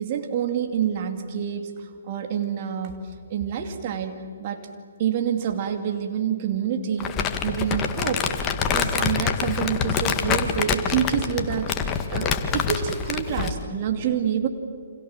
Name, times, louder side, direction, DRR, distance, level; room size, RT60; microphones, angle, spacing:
voice 1, 0.0-3.0 3.3-4.7 5.0-14.5, right 8 dB, 40° right, 5 dB, 2.5 m, -27 dB
Crumpling crinkling, 7.0-13.6, left 6 dB, 25° left, 1.8 m, -26 dB
29.5 x 26.0 x 7.4 m, 2.2 s
figure-of-eight pair, 130°, 0 cm